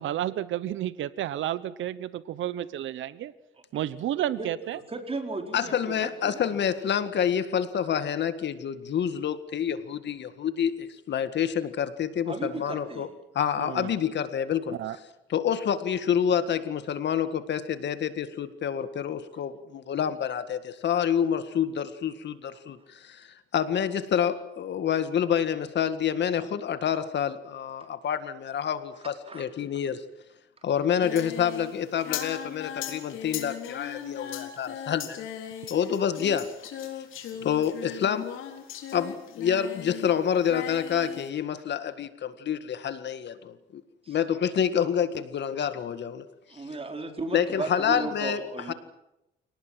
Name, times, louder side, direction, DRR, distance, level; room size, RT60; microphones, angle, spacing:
voice 1, 0.0-3.3 3.7-4.8 13.6-13.9 14.8-15.0, right 12 dB, 80° right, 16 dB, 1.0 m, -31 dB
voice 2, 3.6-3.9 4.1-6.4 12.3-13.1 29.0-29.5 44.0-44.2 46.5-48.7, right 3 dB, 30° right, 4 dB, 4.6 m, -36 dB
voice 3, 5.5-13.1 13.3-14.8 15.3-30.0 30.6-35.3 35.7-36.5 37.4-38.3 38.9-43.8 44.1-46.3 47.3-48.4 48.7-48.8, left 8 dB, 60° left, 11 dB, 1.9 m, -28 dB
Singing, 31.0-40.1 40.4-41.3, left 9 dB, 85° left, 4.0 m, -38 dB
27.5 x 18.5 x 7.7 m, 0.90 s
cardioid pair, 90°, 20 cm